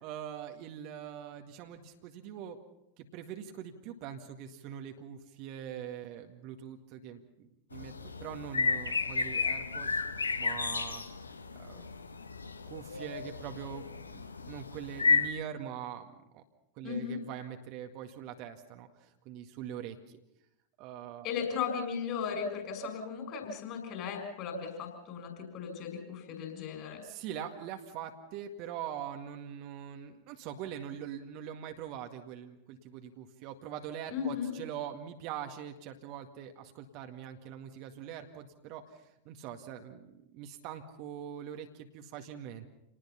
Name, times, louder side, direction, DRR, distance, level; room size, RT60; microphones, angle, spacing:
voice 1, 0.0-2.6 3.0-7.9 8.2-10.0 10.4-11.0 11.6-11.9 12.7-13.8 14.1-16.4 16.8-20.2 20.8-21.3 27.0-42.7, right 9 dB, 45° right, 5 dB, 1.9 m, -43 dB
sound 1, 7.7-15.3, left 4 dB, 75° left, 1.2 m, -33 dB
voice 2, 16.8-17.2 21.2-27.0 34.1-34.5, left 6 dB, 40° left, 5 dB, 6.6 m, -36 dB
28.5 x 19.5 x 5.8 m, 0.84 s
figure-of-eight pair, 90°, 0 cm